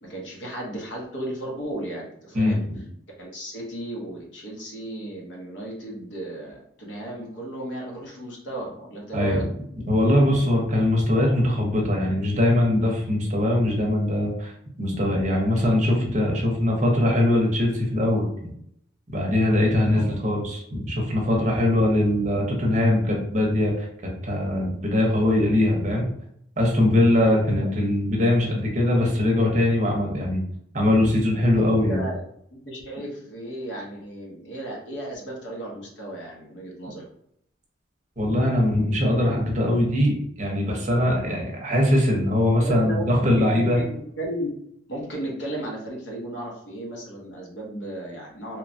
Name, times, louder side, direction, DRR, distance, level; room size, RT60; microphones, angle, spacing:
voice 1, 0.0-2.6 3.2-9.5 19.9-20.2 27.6-27.7 31.5-32.2 32.5-37.1 42.6-44.5 44.9-48.6, right 1 dB, 70° left, -2 dB, 0.8 m, -34 dB
voice 2, 2.3-2.8 9.1-9.4 9.9-14.5 14.8-18.5 19.1-23.9 24.2-26.1 26.6-30.4 30.7-32.0 38.2-43.8, left 1 dB, 40° right, -1 dB, 0.7 m, -21 dB
3.1 x 2.2 x 2.5 m, 0.70 s
head